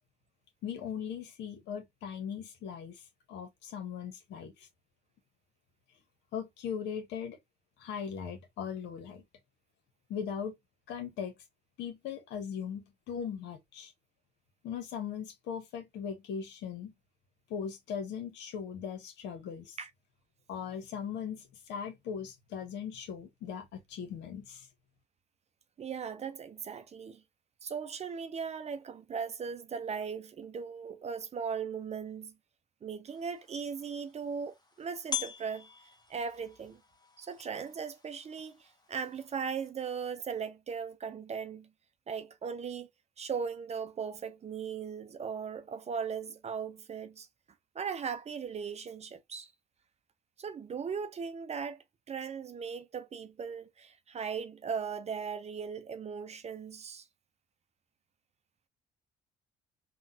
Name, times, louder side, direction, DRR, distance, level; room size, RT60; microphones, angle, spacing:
voice 1, 0.6-3.0 3.3-4.7 6.3-7.4 7.8-9.2 10.1-10.5 10.9-11.3 11.8-13.9 14.6-16.9 17.5-19.8 20.5-24.7, left 7 dB, 65° left, 1.1 m, -39 dB
voice 2, 25.8-27.2 27.6-32.3 32.8-35.7 36.1-36.8 37.2-41.7 42.1-42.9 43.2-47.3 47.7-49.5 50.4-57.1, right 6 dB, 35° right, 0.6 m, -38 dB
bright bell, 33.1-39.7, left 7 dB, 20° left, 1.1 m, -44 dB
3.8 x 2.4 x 2.7 m
hypercardioid pair, 55°, 19 cm